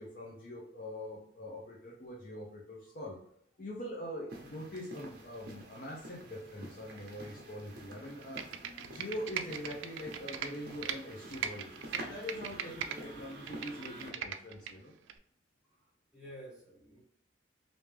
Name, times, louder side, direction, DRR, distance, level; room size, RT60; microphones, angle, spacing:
voice 1, 0.0-3.2 3.6-8.4 8.8-14.9, left 1 dB, 45° left, -2 dB, 0.6 m, -43 dB
sound 1, 4.3-14.1, right 1 dB, 50° right, 0.8 m, -49 dB
Computer keyboard, 8.2-11.0 11.3-13.0 13.3-14.7 15.1-15.2, right 8 dB, 80° right, 0.4 m, -39 dB
voice 2, 16.1-17.0, equal, 5° right, -6 dB, 1.2 m, -52 dB
3.3 x 2.7 x 3.2 m, 0.70 s
head